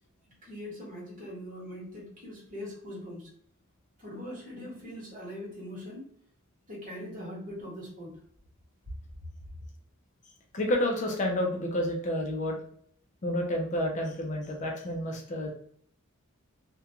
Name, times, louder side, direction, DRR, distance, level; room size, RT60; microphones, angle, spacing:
voice 1, 0.4-3.3 4.0-6.1 6.7-8.2, left 1 dB, 40° right, -4 dB, 1.1 m, -41 dB
voice 2, 10.5-12.6 13.2-15.5, left 1 dB, 35° left, 1 dB, 0.4 m, -30 dB
2.4 x 2.2 x 2.8 m, 0.62 s
head